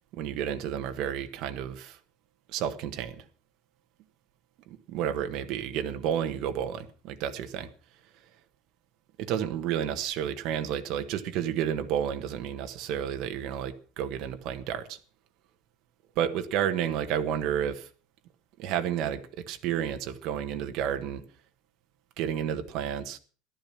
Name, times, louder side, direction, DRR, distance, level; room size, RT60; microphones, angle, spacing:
voice 1, 0.1-2.0 2.5-3.2 4.7-7.7 9.2-15.0 16.1-17.9 18.6-21.2 22.2-23.2, right 9 dB, 45° right, 1.4 m, -31 dB
14.5 x 12.0 x 5.9 m
cardioid pair, 180°, 0 cm